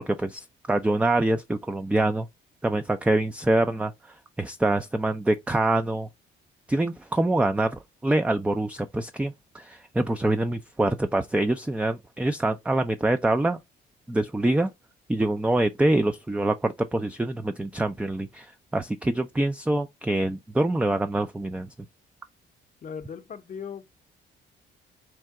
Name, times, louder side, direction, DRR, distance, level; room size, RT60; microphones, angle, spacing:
voice 1, 0.1-2.3 2.6-6.1 6.7-13.6 14.1-14.7 15.1-21.7, right 2 dB, 5° right, 0.3 m, -25 dB
voice 2, 22.8-23.8, left 7 dB, 40° left, 0.6 m, -38 dB
4.5 x 2.1 x 3.6 m
cardioid pair, 90°, 20 cm